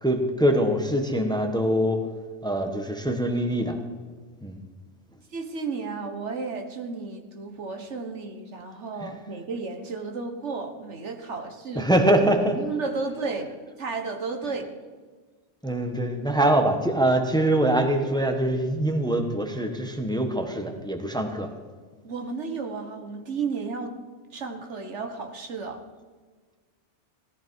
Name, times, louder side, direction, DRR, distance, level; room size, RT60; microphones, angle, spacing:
voice 1, 0.0-2.0 2.4-3.8 4.4-4.6 9.0-9.1 11.7-12.6 15.6-21.5, right 1 dB, 5° left, 5 dB, 1.3 m, -23 dB
voice 2, 5.3-11.9 12.5-13.5 13.8-14.7 22.0-24.0 24.3-25.8, right 4 dB, 70° right, 4 dB, 1.7 m, -33 dB
17.0 x 14.0 x 4.6 m, 1.4 s
omnidirectional pair, 1.3 m